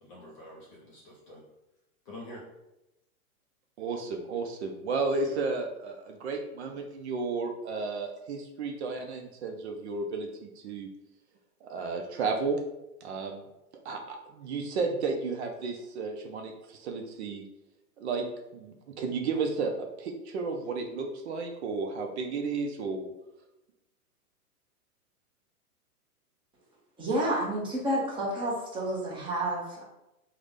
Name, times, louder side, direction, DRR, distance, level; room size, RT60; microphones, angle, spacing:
voice 1, 0.0-1.4 2.1-2.4 5.1-5.4, left 1 dB, 25° left, -4 dB, 0.4 m, -47 dB
voice 2, 3.8-10.3 10.6-10.9 11.6-12.6 13.0-13.4 13.9-16.5 16.8-17.4 18.0-18.3 18.5-19.7 20.0-23.1, right 4 dB, 45° right, 4 dB, 0.5 m, -33 dB
voice 3, 27.0-29.8, right 1 dB, 10° right, -4 dB, 0.7 m, -30 dB
3.5 x 2.1 x 3.3 m, 0.93 s
hypercardioid pair, 125°, 46 cm